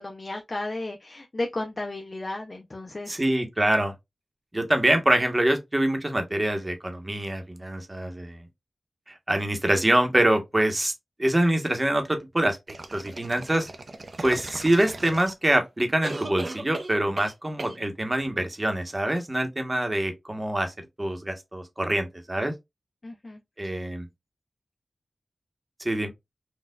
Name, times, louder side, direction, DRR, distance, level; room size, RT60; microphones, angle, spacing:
voice 1, 0.0-3.2 23.0-23.9, left 2 dB, 45° left, 0.6 m, -34 dB
voice 2, 3.1-3.9 4.5-8.4 9.1-10.9 11.2-12.6 12.9-13.7 14.2-22.5 23.6-24.1 25.8-26.1, right 1 dB, 30° right, 1.0 m, -25 dB
sound 1, 12.7-15.6 16.0-17.3 17.6-17.8, right 2 dB, 55° right, 0.7 m, -37 dB
4.3 x 2.4 x 2.2 m
cardioid pair, 55°, 0 cm